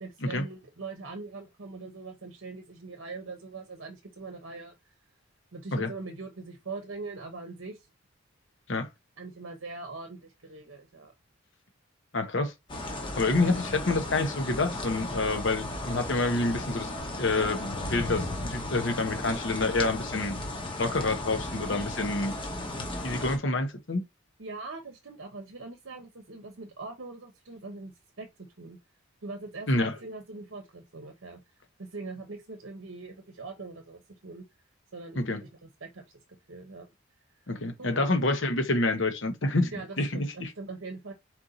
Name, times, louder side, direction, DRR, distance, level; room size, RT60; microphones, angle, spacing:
voice 1, 0.0-4.9 5.5-7.9 9.2-11.1 24.4-27.9 28.2-28.8 29.2-31.4 31.8-34.4 34.9-36.9 37.8-38.1 39.7-41.1, right 3 dB, 65° right, 0.8 m, -42 dB
voice 2, 12.1-12.5 13.2-16.9 17.2-20.3 20.8-22.3 23.0-24.0 29.7-29.9 35.1-35.4 37.5-39.7 40.0-40.5, left 2 dB, 60° left, 1.0 m, -27 dB
sound 1, 12.7-23.4, left 1 dB, 25° left, 0.9 m, -35 dB
4.5 x 2.7 x 3.9 m
head